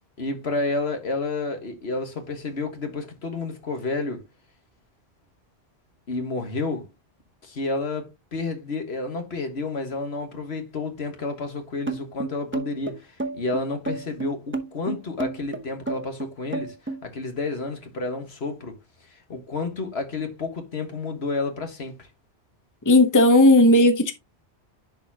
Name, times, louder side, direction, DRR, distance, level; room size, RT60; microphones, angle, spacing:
voice 1, 0.2-4.2 6.1-6.9 7.4-18.7 19.1-22.1, left 3 dB, 70° left, 1.8 m, -30 dB
sound 1, 11.9-17.0, right 3 dB, 15° right, 0.7 m, -30 dB
voice 2, 22.9-24.1, left 1 dB, 20° left, 0.9 m, -15 dB
10.5 x 4.2 x 2.8 m
omnidirectional pair, 1.1 m